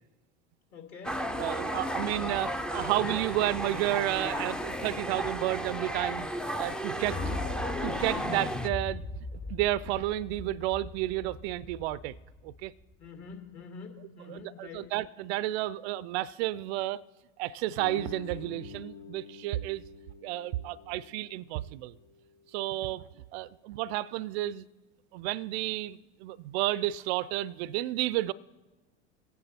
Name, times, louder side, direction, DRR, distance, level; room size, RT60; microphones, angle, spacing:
voice 1, 0.7-1.2 7.0-7.4 13.0-14.9, left 5 dB, 45° left, 2.7 m, -46 dB
sound 1, 1.0-8.7, equal, ahead, 0.5 m, -34 dB
voice 2, 1.4-7.2 7.8-9.1 9.3-12.2 12.4-12.7 14.3-17.0 17.4-19.8 20.2-21.9 22.5-24.7 25.1-28.3, right 15 dB, 60° right, 0.5 m, -31 dB
sound 2, 7.0-13.1, left 3 dB, 25° left, 1.0 m, -39 dB
Guitar, 17.8-23.1, left 7 dB, 80° left, 3.5 m, -48 dB
22.5 x 9.4 x 4.3 m
hypercardioid pair, 80°, 37 cm